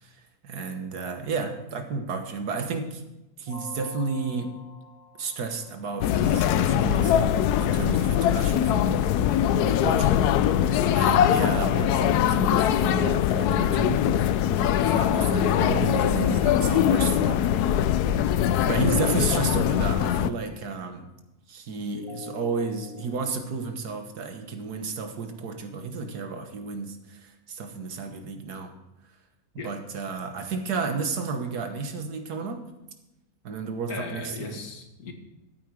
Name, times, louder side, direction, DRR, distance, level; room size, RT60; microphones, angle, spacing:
voice 1, 0.0-3.0 3.4-4.5 5.2-7.2 7.6-10.3 10.9-14.0 14.7-17.4 18.6-21.1 21.5-28.7 29.6-32.6 33.4-34.6, right 4 dB, 85° right, 6 dB, 1.8 m, -32 dB
sound 1, 3.5-6.4 9.4-12.4 16.1-19.3 21.9-23.4, left 3 dB, 55° left, 3.4 m, -46 dB
sound 2, 6.0-20.3, left 10 dB, 90° left, 1.1 m, -22 dB
voice 2, 33.9-35.1, left 3 dB, 70° left, 5 dB, 1.9 m, -37 dB
14.0 x 8.9 x 4.8 m, 0.97 s
omnidirectional pair, 1.6 m